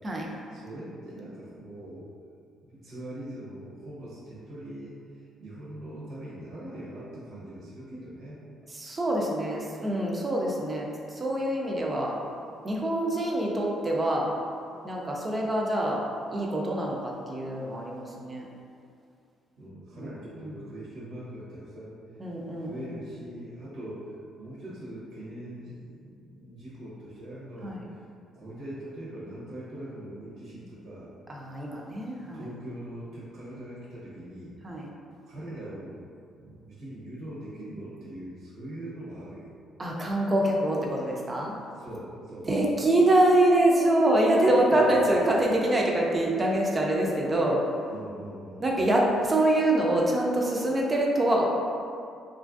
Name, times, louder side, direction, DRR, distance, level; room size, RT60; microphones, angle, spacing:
voice 1, 0.5-2.1 2.6-8.4 19.6-22.0 22.6-24.1 24.4-28.0 28.3-31.1 32.3-34.5 35.3-36.0 36.4-39.5 41.7-42.5 44.5-45.1 47.9-48.9, right 1 dB, 60° right, -8 dB, 0.8 m, -41 dB
voice 2, 8.7-12.1 12.6-14.3 14.8-16.0 16.3-18.5 20.0-20.1 20.4-20.5 22.2-22.9 27.6-27.8 31.3-32.5 34.6-34.9 39.8-41.5 42.5-47.6 48.6-51.4, right 1 dB, 20° right, -2 dB, 0.4 m, -25 dB
2.9 x 2.5 x 2.3 m, 2.3 s
cardioid pair, 150°, 0 cm